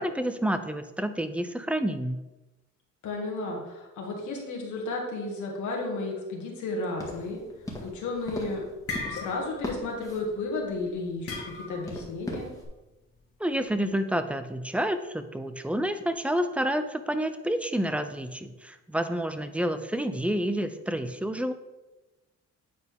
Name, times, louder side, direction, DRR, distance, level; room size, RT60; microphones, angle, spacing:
voice 1, 0.0-2.2 13.4-21.5, right 1 dB, 5° right, 9 dB, 0.5 m, -29 dB
voice 2, 3.0-7.4 7.8-12.5, left 2 dB, 75° left, -1 dB, 1.7 m, -33 dB
sound 1, 7.0-12.7, left 1 dB, 10° left, 1.7 m, -41 dB
sound 2, 8.0-8.3 8.6-9.7 10.0-10.3 11.3-12.0, left 3 dB, 50° left, 1.5 m, -36 dB
9.2 x 4.1 x 3.6 m, 1.1 s
cardioid pair, 90°, 30 cm